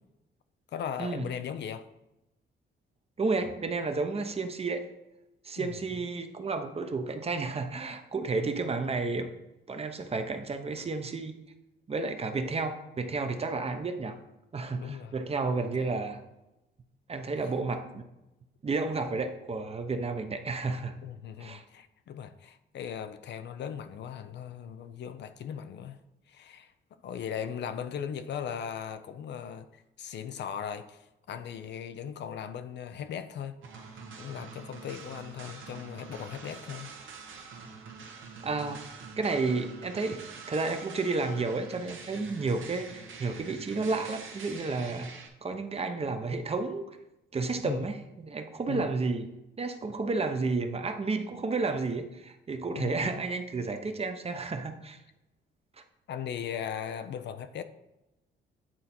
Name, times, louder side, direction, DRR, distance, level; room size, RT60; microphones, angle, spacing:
voice 1, 0.7-1.8 5.6-6.1 8.4-8.6 14.7-15.1 15.8-16.0 21.0-26.0 26.3-26.7 27.0-33.6 34.2-36.9 47.6-47.9 48.7-48.9 52.7-53.2 56.1-57.6, left 8 dB, 60° left, 0.6 m, -38 dB
voice 2, 3.2-4.9 5.4-9.3 9.7-11.4 11.9-14.2 14.5-16.2 17.1-18.0 18.6-20.9 21.4-21.6 38.4-38.9 39.2-45.1 45.4-46.9 47.3-49.3 49.6-55.0, right 3 dB, 30° right, 0.8 m, -31 dB
sound 1, 33.6-45.3, right 5 dB, 75° right, 1.1 m, -45 dB
8.8 x 3.9 x 4.3 m
cardioid pair, 90°, 20 cm